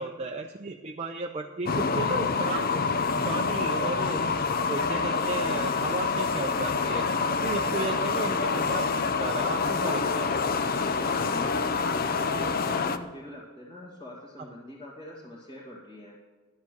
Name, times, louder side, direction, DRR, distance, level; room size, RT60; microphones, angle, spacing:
voice 1, 0.0-2.9 3.3-4.2 4.7-7.0 7.4-10.3, right 3 dB, 30° right, 2 dB, 0.6 m, -34 dB
sound 1, 1.7-13.0, left 4 dB, 45° left, 0.6 m, -27 dB
voice 2, 7.8-8.1 11.3-16.2, left 1 dB, 25° left, -6 dB, 1.9 m, -43 dB
12.0 x 7.2 x 6.0 m, 1.3 s
head